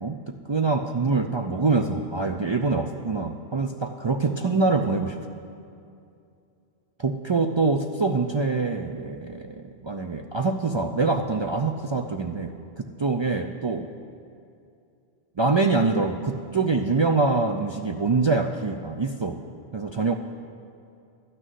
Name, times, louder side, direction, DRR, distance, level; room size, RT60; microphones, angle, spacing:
voice 1, 0.0-5.2 7.0-13.9 15.4-19.4 19.7-20.2, right 3 dB, 50° right, 3 dB, 0.3 m, -25 dB
12.0 x 6.4 x 9.3 m, 2.5 s
omnidirectional pair, 1.1 m